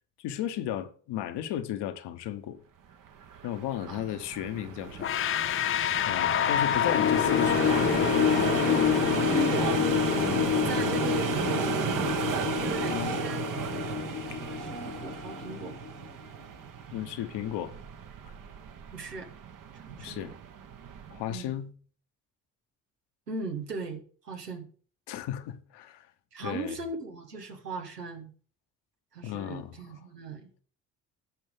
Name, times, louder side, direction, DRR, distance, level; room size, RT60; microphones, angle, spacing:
voice 1, 0.2-2.6 3.4-5.1 6.1-8.0 10.2-10.9 12.9-13.2 16.9-17.8 20.0-20.3 21.1-21.7 25.1-26.1 26.4-26.7 29.2-29.8, left 11 dB, 60° left, 1.2 m, -35 dB
sound 1, 3.1-21.4, right 8 dB, 40° right, 1.1 m, -34 dB
sound 2, 5.0-15.9, left 10 dB, 30° left, 0.4 m, -27 dB
voice 2, 9.1-10.1 10.5-12.2 12.6-13.4 14.4-15.8 18.9-19.3 19.7-20.2 21.3-21.6 23.3-24.7 26.3-28.3 29.1-30.5, right 3 dB, 90° right, 1.2 m, -38 dB
15.0 x 5.4 x 3.6 m
figure-of-eight pair, 45°, 47 cm